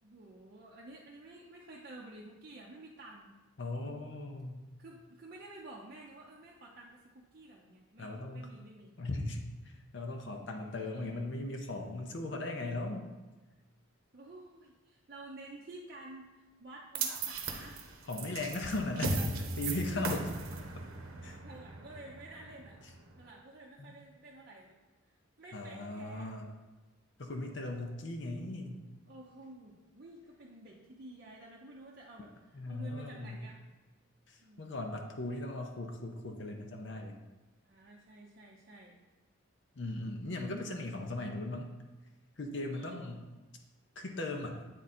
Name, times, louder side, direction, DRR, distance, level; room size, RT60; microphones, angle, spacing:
voice 1, 0.0-3.3 4.8-8.9 10.5-11.3 14.1-17.8 18.5-18.8 19.9-20.6 21.3-22.8 23.2-24.8 25.4-26.4 29.1-33.6 34.4-34.7 37.6-38.9 42.7-43.0, right 2 dB, 45° right, -3 dB, 0.6 m, -51 dB
voice 2, 3.6-4.7 8.0-8.5 9.0-9.5 9.9-13.0 18.1-20.2 21.2-21.4 23.8-23.9 25.5-26.5 27.2-28.8 32.5-33.4 34.3-37.2 39.8-41.7 42.4-43.2 44.0-44.6, left 2 dB, 60° left, 3 dB, 0.6 m, -38 dB
sound 1, 17.0-23.2, right 4 dB, 90° right, 0.8 m, -38 dB
8.2 x 3.7 x 4.2 m, 1.2 s
head